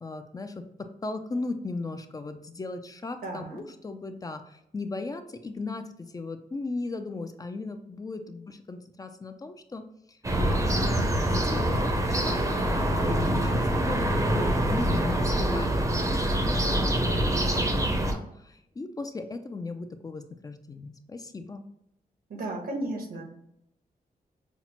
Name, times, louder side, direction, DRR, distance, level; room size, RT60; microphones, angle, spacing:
voice 1, 0.0-9.8 10.1-17.1 17.5-21.7, left 3 dB, 25° left, 8 dB, 0.3 m, -37 dB
voice 2, 3.2-3.6 16.9-17.4 22.3-23.2, right 2 dB, 85° right, 1 dB, 1.0 m, -35 dB
sound 1, 10.2-18.1, right 1 dB, 20° right, 0.6 m, -25 dB
5.7 x 2.0 x 2.8 m, 0.78 s
wide cardioid pair, 120°, 15 cm